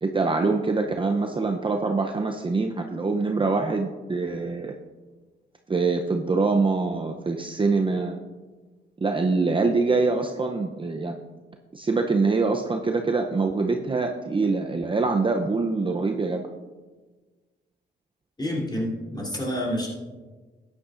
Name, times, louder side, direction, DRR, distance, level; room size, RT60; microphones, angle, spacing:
voice 1, 0.0-4.8 5.7-8.2 9.0-11.2 11.7-16.4, right 3 dB, 25° right, 3 dB, 0.6 m, -24 dB
voice 2, 18.4-19.9, equal, 20° left, -3 dB, 3.1 m, -28 dB
13.5 x 9.8 x 2.5 m, 1.3 s
cardioid pair, 85°, 20 cm